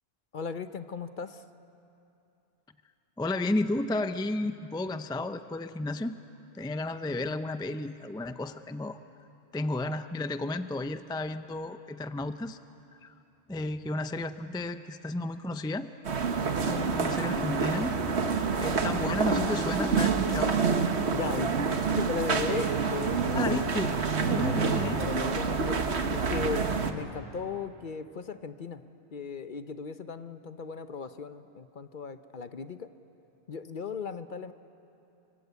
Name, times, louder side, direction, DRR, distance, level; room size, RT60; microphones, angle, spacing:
voice 1, 0.3-1.4 21.1-23.6 24.3-25.8 26.3-26.6 26.9-28.8 29.1-32.9 33.5-34.5, left 5 dB, 50° left, 10 dB, 0.9 m, -37 dB
voice 2, 3.2-6.2 6.5-9.0 9.5-12.6 13.0-13.1 13.5-15.9 16.6-18.0 18.6-20.6 23.3-25.0, left 2 dB, 5° left, 10 dB, 0.5 m, -33 dB
sound 1, 16.0-26.9, right 5 dB, 75° right, 1.5 m, -27 dB
26.5 x 24.0 x 8.2 m, 2.8 s
omnidirectional pair, 1.1 m